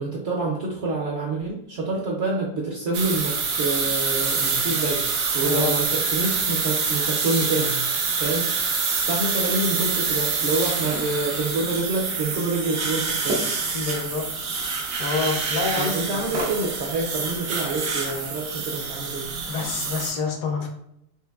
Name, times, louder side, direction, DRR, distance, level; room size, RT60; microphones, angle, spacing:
voice 1, 0.0-5.0 5.3-7.8 8.2-13.4 15.7-19.3, right 3 dB, 65° right, -1 dB, 0.7 m, -27 dB
sound 1, 2.9-20.1, right 4 dB, 85° right, 1.3 m, -26 dB
voice 2, 13.7-14.2 15.0-15.9 19.5-20.7, left 4 dB, 70° left, 3 dB, 1.0 m, -27 dB
4.4 x 2.5 x 2.3 m, 0.78 s
omnidirectional pair, 1.7 m